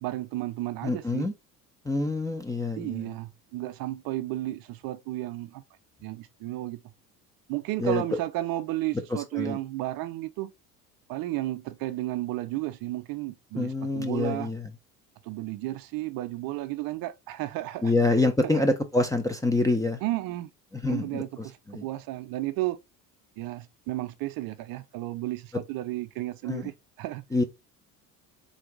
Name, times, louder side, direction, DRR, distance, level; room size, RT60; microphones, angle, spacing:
voice 1, 0.0-1.3 2.8-5.6 6.0-6.8 7.5-10.5 11.1-14.5 15.3-17.9 18.4-18.6 20.0-20.5 20.9-22.8 23.4-27.2, right 16 dB, 45° right, 0.6 m, -33 dB
voice 2, 0.8-1.3 1.8-3.1 7.8-8.0 9.1-9.6 13.6-14.7 17.8-20.0 20.7-21.9 26.5-26.7 27.3-27.4, left 2 dB, 10° left, 0.4 m, -26 dB
3.9 x 2.5 x 3.6 m
figure-of-eight pair, 60°, 48 cm